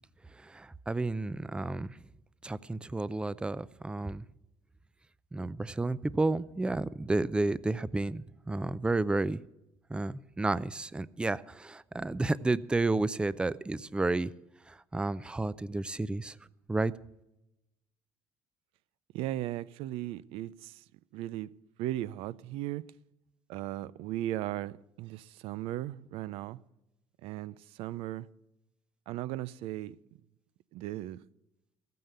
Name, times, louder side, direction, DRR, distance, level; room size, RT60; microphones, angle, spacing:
voice 1, 0.3-2.0 2.4-4.2 5.3-9.4 9.9-14.3 14.7-16.4 16.7-16.9, right 2 dB, 10° right, 0.4 m, -31 dB
voice 2, 19.1-20.8 21.1-21.5 21.8-22.8 23.5-26.6 27.2-28.3 29.1-30.0 30.7-31.2, right 14 dB, 80° right, 0.5 m, -37 dB
14.0 x 9.3 x 6.7 m
cardioid pair, 100°, 9 cm